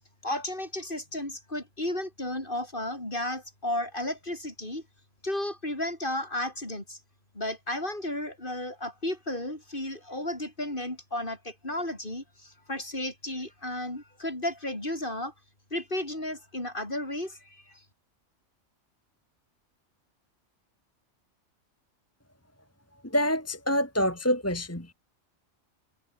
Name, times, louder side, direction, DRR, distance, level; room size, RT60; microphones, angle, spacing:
voice 1, 0.2-4.8 5.2-7.0 7.3-15.3 15.7-17.8, left 1 dB, 45° left, 6.4 m, -33 dB
voice 2, 23.1-24.9, equal, 10° left, 2.3 m, -26 dB
omnidirectional pair, 1.3 m